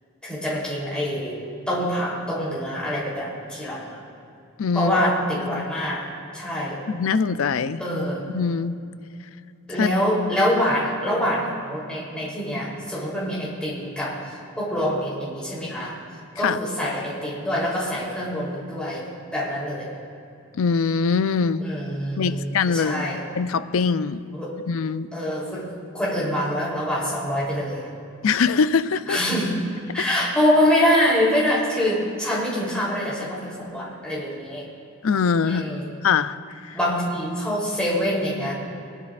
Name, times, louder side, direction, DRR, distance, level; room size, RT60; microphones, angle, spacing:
voice 1, 0.2-1.4 1.7-4.0 4.7-6.1 6.3-6.8 7.8-8.3 9.7-16.0 16.4-19.9 21.6-23.2 24.3-24.6 25.1-25.7 25.9-27.9 29.1-29.6 29.9-34.7 35.4-35.9 36.7-38.5, equal, 5° left, -8 dB, 3.5 m, -25 dB
voice 2, 4.6-4.9 5.5-5.7 6.9-7.8 8.3-8.8 9.8-9.9 16.4-16.6 20.5-21.6 22.2-23.1 23.3-24.2 24.7-25.1 28.2-29.2 30.0-30.1 35.0-35.7 36.0-36.4 36.6-36.8, left 5 dB, 70° left, 13 dB, 0.4 m, -22 dB
21.5 x 11.5 x 2.5 m, 2.6 s
head